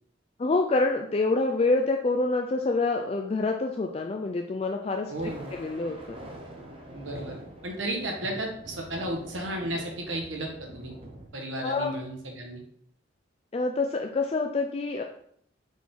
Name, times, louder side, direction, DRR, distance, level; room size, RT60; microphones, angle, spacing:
voice 1, 0.4-5.1 5.5-6.2 11.6-11.9 13.5-15.0, left 3 dB, 30° left, 3 dB, 0.3 m, -26 dB
Thunder, 5.0-11.3, right 1 dB, 30° right, 0.9 m, -45 dB
voice 2, 5.1-5.5 6.9-7.3 7.6-10.9 11.3-12.6, right 1 dB, 80° right, 1 dB, 1.3 m, -33 dB
6.2 x 4.4 x 3.7 m, 0.68 s
head